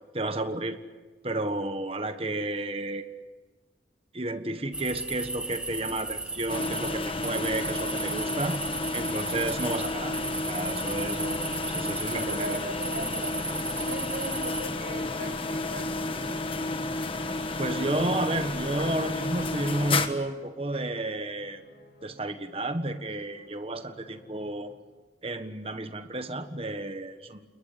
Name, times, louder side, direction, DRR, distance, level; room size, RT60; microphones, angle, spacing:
voice 1, 0.1-0.8 1.2-3.1 4.1-8.6 8.9-10.2 10.5-11.4 11.7-12.6 17.6-21.6 22.0-24.8 25.2-27.4, right 2 dB, 35° right, 9 dB, 1.4 m, -31 dB
sound 1, 4.7-14.7, right 2 dB, 5° right, 1.8 m, -36 dB
sound 2, 6.5-20.1, left 2 dB, 30° left, 1.4 m, -31 dB
sound 3, 9.7-24.7, equal, 60° left, 7.0 m, -56 dB
voice 2, 12.3-13.3 13.8-16.5, right 1 dB, 60° right, 3 dB, 7.5 m, -39 dB
29.5 x 21.0 x 8.4 m, 1.3 s
head